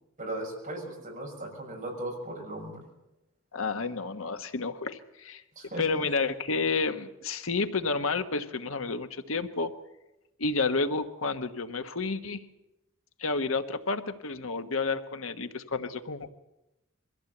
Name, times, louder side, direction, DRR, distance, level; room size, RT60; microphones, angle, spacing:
voice 1, 0.2-2.9 5.5-5.8, right 1 dB, 40° right, 0 dB, 6.5 m, -37 dB
voice 2, 3.5-5.4 5.8-9.7 10.4-12.4 13.2-16.3, left 4 dB, 90° left, 8 dB, 1.3 m, -30 dB
23.0 x 15.0 x 7.9 m, 0.95 s
head